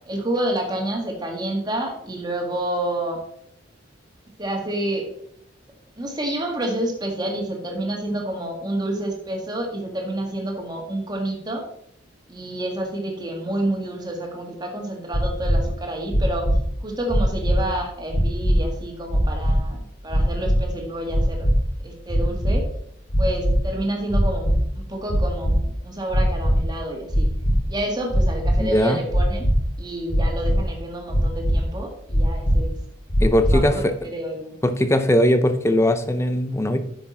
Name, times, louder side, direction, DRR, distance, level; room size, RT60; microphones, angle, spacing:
voice 1, 0.1-3.2 4.4-5.1 6.0-11.6 12.3-16.5 16.8-21.5 21.8-22.6 23.2-27.3 27.7-29.5 29.8-32.8 33.5-34.6, right 1 dB, 20° right, 1 dB, 1.9 m, -29 dB
sound 1, 15.1-15.6 16.1-16.6 17.1-17.6 18.1-18.6 19.1-19.6 20.1-20.6 21.1-21.5 22.1-22.5 23.1-23.6 24.1-24.6 25.1-25.5 26.1-26.6 27.1-27.6 28.1-28.5 29.1-29.5 30.1-30.6 31.1-31.5 32.1-32.6 33.1-33.6, equal, 75° left, 3.1 m, -20 dB
voice 2, 28.6-29.0 33.2-33.9 34.6-36.8, left 1 dB, 15° left, 9 dB, 0.6 m, -19 dB
10.0 x 6.0 x 4.2 m, 0.72 s
head